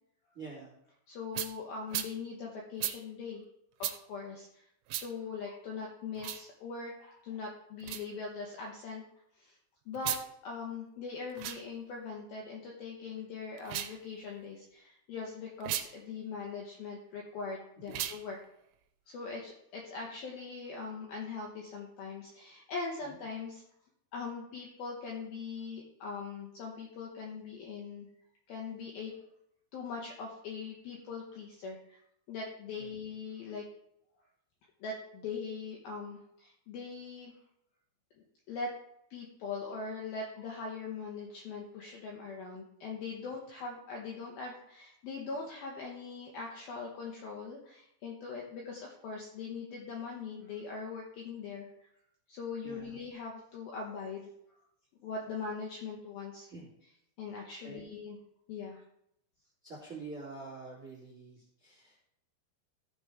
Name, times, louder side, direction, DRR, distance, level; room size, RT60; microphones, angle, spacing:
voice 1, 0.3-0.7 32.8-32.9 52.6-53.0 56.5-56.7 57.6-57.8 59.6-62.0, right 3 dB, 25° right, -4 dB, 1.9 m, -46 dB
voice 2, 1.1-3.5 3.8-4.7 5.0-9.0 9.3-9.6 9.9-10.2 10.4-18.4 19.1-23.6 24.1-28.1 28.5-29.1 29.7-32.0 32.3-33.6 34.8-37.3 38.5-38.7 39.1-51.7 52.3-54.3 55.0-56.5 57.2-58.2 58.5-58.8, left 4 dB, 70° left, -1 dB, 2.3 m, -41 dB
sound 1, 1.3-1.5 1.9-2.1 2.8-3.0 3.8-4.0 4.9-5.1 6.2-6.4 7.8-8.1 9.9-10.3 11.3-11.6 13.6-14.0 15.6-15.9 17.9-18.2, right 12 dB, 85° right, 3.2 m, -35 dB
15.0 x 5.0 x 4.8 m, 0.76 s
omnidirectional pair, 5.6 m